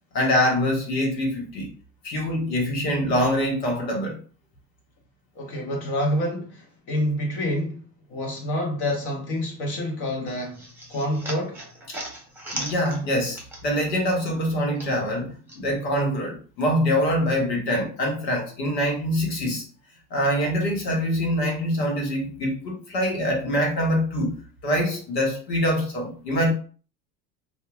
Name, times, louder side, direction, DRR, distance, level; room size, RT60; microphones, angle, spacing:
voice 1, 0.1-1.7 2.0-4.2 11.9-12.0 12.5-19.6 20.1-24.3 24.6-26.5, equal, 90° left, 1.1 m, -24 dB
voice 2, 5.3-7.8 8.1-10.6 10.9-11.6, left 1 dB, 55° left, 1.3 m, -27 dB
sound 1, 10.3-13.9 14.2-15.6, right 1 dB, 5° right, 0.9 m, -38 dB
2.8 x 2.3 x 2.3 m
hypercardioid pair, 80°, 49 cm